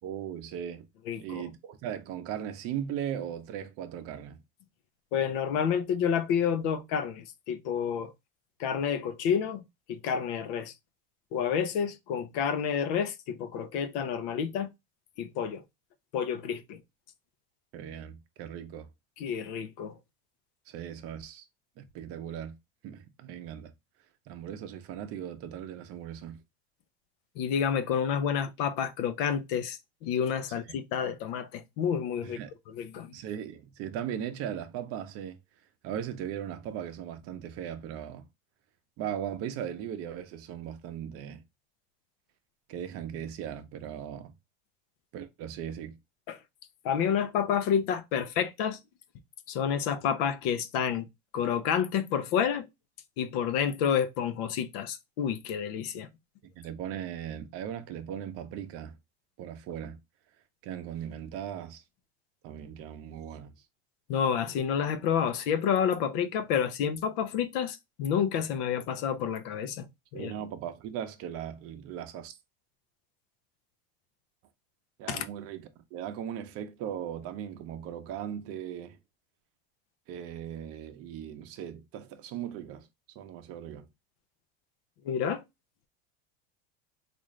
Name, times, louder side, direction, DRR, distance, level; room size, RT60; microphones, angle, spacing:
voice 1, 0.0-0.9 1.2-4.4 17.7-18.9 20.7-21.4 21.8-22.6 22.8-23.7 24.3-26.4 32.2-32.5 33.1-35.4 35.8-38.3 39.0-41.4 42.7-44.3 45.1-46.0 56.6-59.0 59.4-60.0 60.6-61.8 62.4-63.6 70.1-72.3 75.0-79.0 80.1-82.9 83.1-83.9, right 9 dB, 45° right, 0.7 m, -38 dB
voice 2, 1.1-1.5 5.1-8.1 8.6-9.6 9.9-10.7 11.3-14.7 15.2-15.6 16.1-16.8 19.2-20.0 27.4-32.4 32.7-33.1 46.3-46.4 46.8-48.8 49.5-51.1 51.3-52.7 53.2-56.1 64.1-69.9 70.1-70.3 75.1-75.2 85.0-85.4, left 8 dB, 60° left, 0.7 m, -29 dB
3.7 x 2.5 x 3.1 m
supercardioid pair, 130°, 32 cm